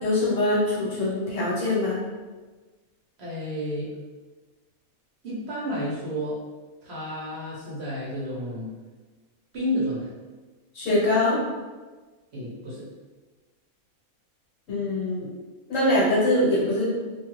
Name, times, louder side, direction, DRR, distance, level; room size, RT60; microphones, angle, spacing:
voice 1, 0.0-2.0 10.7-11.4 14.7-15.3 15.7-16.9, left 1 dB, 65° left, -7 dB, 1.3 m, -23 dB
voice 2, 3.2-3.9 5.2-6.4 6.8-8.7 9.5-10.1 12.3-12.9, equal, 60° right, -6 dB, 0.8 m, -31 dB
2.4 x 2.4 x 3.0 m, 1.3 s
omnidirectional pair, 1.5 m